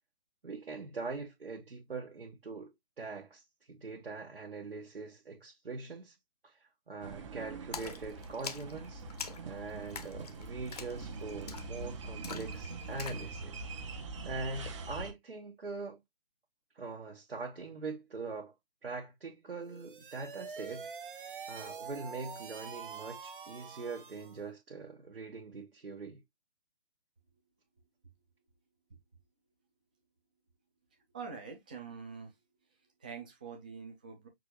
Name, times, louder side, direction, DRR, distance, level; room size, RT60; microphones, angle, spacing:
voice 1, 0.4-2.7 3.0-3.4 3.7-6.1 6.4-6.5 6.9-9.0 9.4-13.7 14.2-16.0 16.7-18.5 18.8-20.9 21.5-26.2, right 3 dB, 75° right, 1.2 m, -42 dB
sound 1, 7.0-15.1, right 3 dB, 30° right, 0.7 m, -43 dB
Splash splatter, 7.7-13.3, left 7 dB, 40° left, 0.7 m, -45 dB
sound 2, 19.6-24.4, right 6 dB, 60° right, 0.9 m, -45 dB
voice 2, 31.1-32.3 33.0-34.3, right 5 dB, 10° right, 0.4 m, -45 dB
6.0 x 2.6 x 2.9 m
figure-of-eight pair, 140°, 30 cm